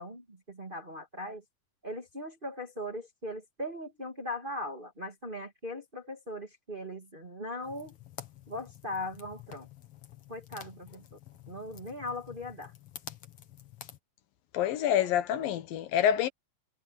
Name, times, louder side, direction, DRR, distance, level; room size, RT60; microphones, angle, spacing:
voice 1, 0.0-1.4 1.8-8.0 8.5-9.7 10.3-11.2 11.5-12.7, left 1 dB, 20° right, 1.8 m, -39 dB
sound 1, 7.6-14.0, left 10 dB, 50° left, 2.1 m, -49 dB
voice 2, 14.5-16.3, left 10 dB, 80° left, 3.0 m, -27 dB
omnidirectional pair, 4.0 m